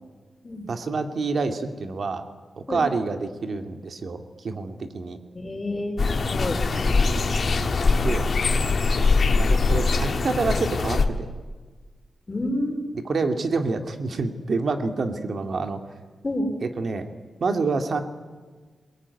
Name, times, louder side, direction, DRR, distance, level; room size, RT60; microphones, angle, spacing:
voice 1, 0.7-2.2 2.7-5.2 6.7-7.2 8.0-8.3 9.4-11.3 13.0-15.8 16.6-17.1 17.4-18.0, right 4 dB, 55° right, 7 dB, 2.2 m, -27 dB
voice 2, 5.3-6.6 12.3-12.8 16.2-16.5, left 1 dB, 25° left, 4 dB, 4.3 m, -29 dB
sound 1, 6.0-11.1, left 3 dB, 50° left, 1.7 m, -22 dB
22.0 x 22.0 x 9.8 m, 1.4 s
wide cardioid pair, 140°, 0 cm